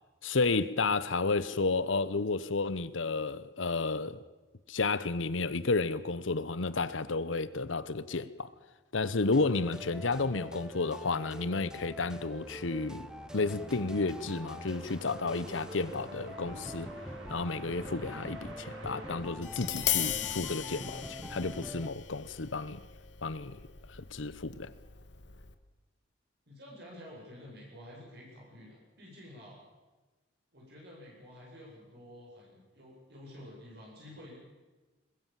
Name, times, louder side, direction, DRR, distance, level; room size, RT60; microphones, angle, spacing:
voice 1, 0.2-4.2 4.7-8.5 8.9-13.1 13.3-16.9 17.3-22.8 23.2-23.6 23.9-24.7, left 3 dB, 80° left, 1.0 m, -32 dB
sound 1, 9.3-21.9, equal, 5° right, 0.8 m, -44 dB
sound 2, 12.2-20.3, right 2 dB, 85° right, 4.4 m, -51 dB
Tap, 19.4-25.5, left 12 dB, 65° left, 1.6 m, -37 dB
voice 2, 26.5-29.6 30.5-34.4, left 1 dB, 55° right, 8.0 m, -50 dB
21.5 x 21.5 x 7.5 m
head